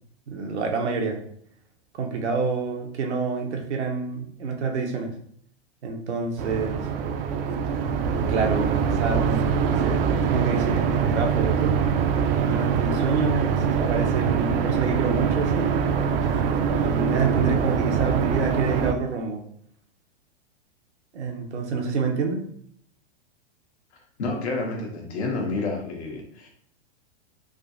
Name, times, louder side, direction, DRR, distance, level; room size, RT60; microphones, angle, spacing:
voice 1, 0.3-1.2 1.9-5.1 5.8-6.9 8.3-11.8 12.5-16.0 16.7-19.4 21.1-22.4, right 4 dB, 85° right, 2 dB, 0.8 m, -28 dB
sound 1, 6.4-18.9, right 7 dB, 60° right, 0.5 m, -24 dB
voice 2, 24.2-26.5, left 3 dB, 80° left, 1 dB, 1.1 m, -29 dB
3.6 x 2.7 x 2.5 m, 0.65 s
hypercardioid pair, 125°, 33 cm